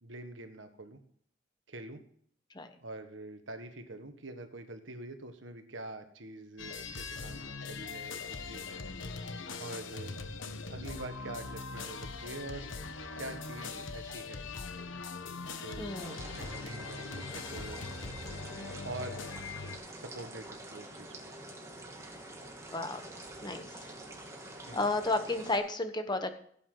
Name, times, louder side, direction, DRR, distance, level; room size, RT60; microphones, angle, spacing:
voice 1, 0.0-1.0 1.7-2.0 2.8-8.8 9.6-10.1 10.7-12.7 13.2-14.5 15.5-16.0 16.4-17.8 18.8-19.2 19.9-21.3 24.7-24.8, right 2 dB, 70° right, 7 dB, 1.6 m, -45 dB
sound 1, 6.6-19.8, left 4 dB, 80° left, 1.1 m, -41 dB
voice 2, 15.8-16.2 22.7-23.1 23.4-23.9 24.7-26.3, left 2 dB, 25° left, 8 dB, 1.1 m, -32 dB
sound 2, 15.9-25.6, right 1 dB, 15° right, 2.5 m, -46 dB
16.5 x 8.6 x 3.9 m, 0.63 s
head